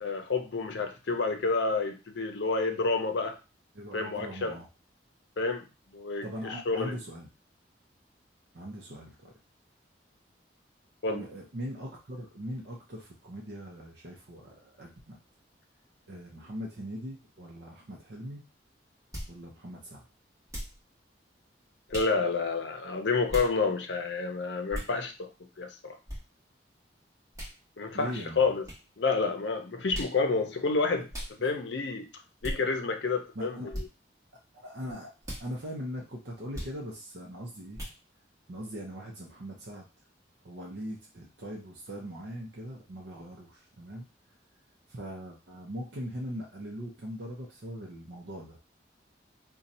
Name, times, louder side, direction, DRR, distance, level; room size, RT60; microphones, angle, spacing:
voice 1, 0.0-3.4 3.9-4.5 5.4-5.6 5.9-7.0 11.0-11.2 21.9-25.3 25.6-26.0 27.8-28.6 29.0-31.1 31.4-32.1 32.4-33.6, left 4 dB, 75° left, 5 dB, 0.6 m, -29 dB
voice 2, 3.7-4.7 6.2-7.3 8.5-9.3 11.1-15.2 16.1-18.4 19.3-20.1 27.9-28.5 33.3-33.7 34.5-35.1 35.4-37.8 38.5-39.9 40.4-44.0 44.9-48.6, equal, 60° right, -2 dB, 0.6 m, -40 dB
sound 1, 19.1-19.4 20.5-20.8 21.9-22.1 23.3-23.5 24.7-24.9 26.1-26.2 27.3-27.5 28.6-28.8 29.9-30.2 31.1-31.3 32.4-32.6 33.7-33.9 35.2-35.4 36.5-36.8 37.7-38.0, equal, 20° right, 1.1 m, -37 dB
2.6 x 2.3 x 4.1 m, 0.30 s
head